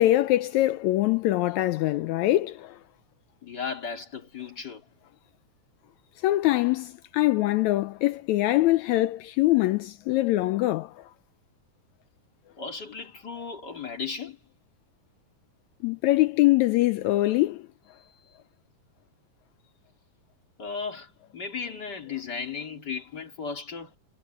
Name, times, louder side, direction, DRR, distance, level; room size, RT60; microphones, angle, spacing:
voice 1, 0.0-2.8 6.2-11.1 15.8-17.7, left 16 dB, 90° left, 1.6 m, -23 dB
voice 2, 3.4-4.8 12.6-14.4 20.6-23.9, left 5 dB, 30° left, 3.4 m, -35 dB
omnidirectional pair, 3.9 m